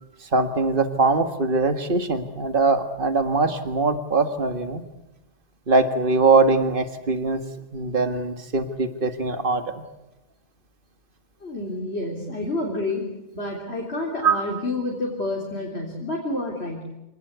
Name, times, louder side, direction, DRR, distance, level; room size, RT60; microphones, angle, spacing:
voice 1, 0.2-4.8 5.7-7.4 7.7-9.6 14.2-14.4, right 3 dB, 55° right, 9 dB, 2.0 m, -22 dB
voice 2, 11.4-13.1 13.3-16.9, left 2 dB, 85° left, -1 dB, 3.9 m, -29 dB
26.5 x 19.0 x 8.2 m, 0.93 s
omnidirectional pair, 1.1 m